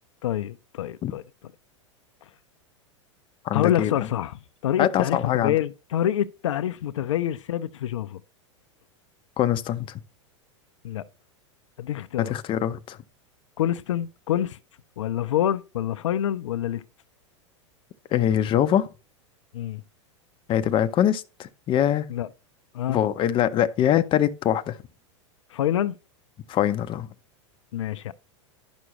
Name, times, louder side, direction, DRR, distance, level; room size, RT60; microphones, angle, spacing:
voice 1, 0.2-1.2 3.5-8.2 10.8-11.0 11.8-12.4 13.6-14.6 15.0-16.8 19.5-19.8 22.1-22.3 22.7-23.0 25.5-25.9 27.7-28.1, left 11 dB, 80° left, 0.5 m, -26 dB
voice 2, 3.4-3.9 4.8-5.5 9.4-9.9 12.2-13.0 18.1-18.9 20.5-22.1 22.9-24.8 26.5-27.1, left 10 dB, 35° left, 0.7 m, -23 dB
11.5 x 6.2 x 3.0 m
hypercardioid pair, 105°, 16 cm